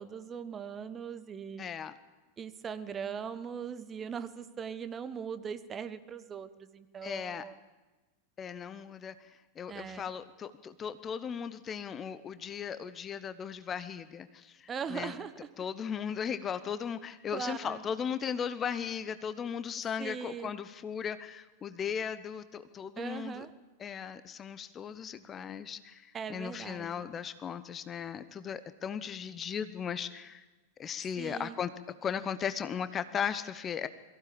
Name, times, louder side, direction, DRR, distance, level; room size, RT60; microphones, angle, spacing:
voice 1, 0.0-1.6 2.4-7.6 9.7-10.1 14.7-15.3 17.3-17.8 20.0-20.5 23.0-23.5 26.1-27.0 31.2-31.6, right 7 dB, 20° right, 12 dB, 1.2 m, -40 dB
voice 2, 1.6-1.9 7.0-7.4 8.4-15.1 15.6-23.5 23.8-30.4 30.8-31.7 32.0-33.9, left 7 dB, 25° left, 14 dB, 0.9 m, -37 dB
23.0 x 15.5 x 8.6 m, 1.2 s
figure-of-eight pair, 90°, 0 cm